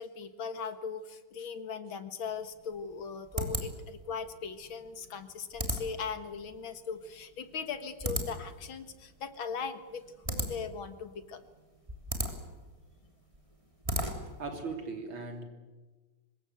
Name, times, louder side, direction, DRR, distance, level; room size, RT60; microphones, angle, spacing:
voice 1, 0.0-11.4, left 6 dB, 65° left, 11 dB, 2.3 m, -39 dB
sound 1, 2.3-14.5, equal, 15° right, 3.1 m, -38 dB
voice 2, 14.4-15.4, right 4 dB, 65° right, 5 dB, 4.1 m, -38 dB
25.5 x 21.0 x 8.0 m, 1.3 s
omnidirectional pair, 2.4 m